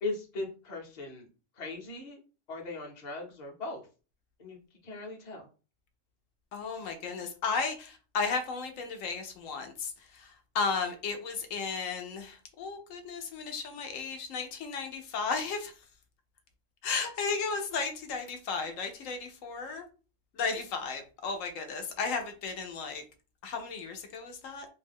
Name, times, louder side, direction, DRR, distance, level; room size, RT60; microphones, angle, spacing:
voice 1, 0.0-1.3 1.6-2.2 2.5-3.8 4.4-4.6 4.8-5.5, left 2 dB, 40° left, 0.8 m, -38 dB
voice 2, 6.5-10.3 10.5-15.7 16.8-19.8 20.4-23.0 23.4-24.7, left 4 dB, 85° left, 1.0 m, -34 dB
2.7 x 2.1 x 3.4 m
omnidirectional pair, 1.3 m